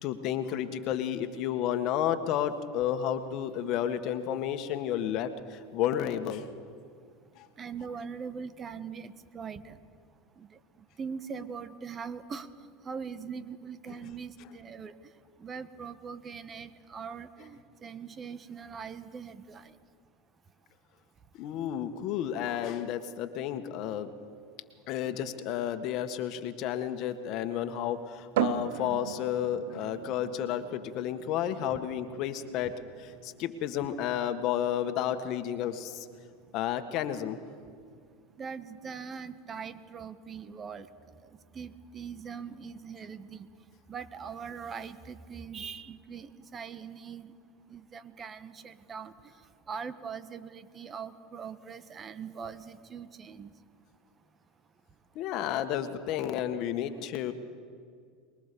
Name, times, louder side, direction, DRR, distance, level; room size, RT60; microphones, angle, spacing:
voice 1, 0.0-6.4 7.4-7.5 21.3-24.1 24.9-36.1 36.5-37.4 55.1-57.3, left 10 dB, 55° left, 9 dB, 1.7 m, -31 dB
voice 2, 7.6-9.7 10.4-10.6 11.0-12.5 12.8-14.9 15.4-19.7 38.4-40.9 41.5-43.5 43.9-47.3 47.7-49.1 49.7-53.5, right 6 dB, 30° right, 12 dB, 1.3 m, -41 dB
sound 1, 28.3-41.8, right 11 dB, 75° right, 0.9 m, -40 dB
24.0 x 22.0 x 7.0 m, 2.1 s
hypercardioid pair, 95°, 0 cm